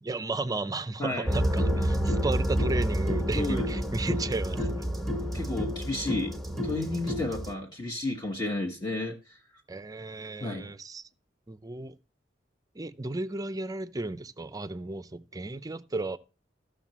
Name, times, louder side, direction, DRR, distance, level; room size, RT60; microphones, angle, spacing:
voice 1, 0.0-4.9 9.7-11.1 11.5-12.0 12.7-16.2, right 2 dB, 20° right, 0.5 m, -34 dB
voice 2, 1.0-1.3 3.3-3.6 4.6-4.7 5.3-6.3 6.6-9.4 10.4-10.7, left 2 dB, 25° left, 1.2 m, -32 dB
sound 1, 1.3-7.5, equal, ahead, 1.2 m, -29 dB
15.0 x 6.6 x 3.0 m
head